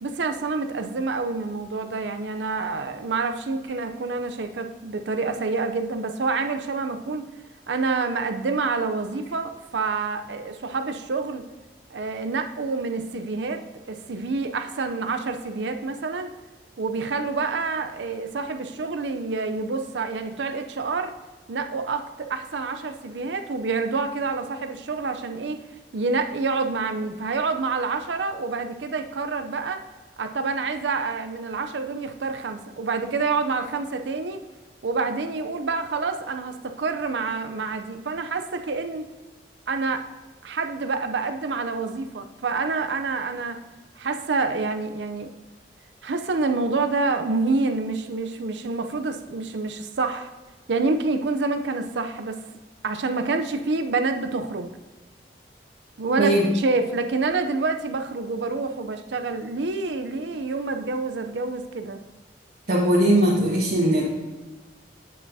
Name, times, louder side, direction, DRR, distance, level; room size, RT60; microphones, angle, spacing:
voice 1, 0.0-7.3 7.7-11.4 11.9-16.3 16.8-21.1 21.5-25.6 25.9-29.8 30.2-34.4 34.8-39.1 39.7-40.0 40.4-43.6 44.0-45.3 46.0-50.3 50.7-52.4 52.8-54.7 56.0-62.0, right 3 dB, 85° right, 7 dB, 0.6 m, -27 dB
voice 2, 62.7-64.1, right 1 dB, 55° right, -8 dB, 1.5 m, -19 dB
8.3 x 7.0 x 2.7 m, 1.2 s
head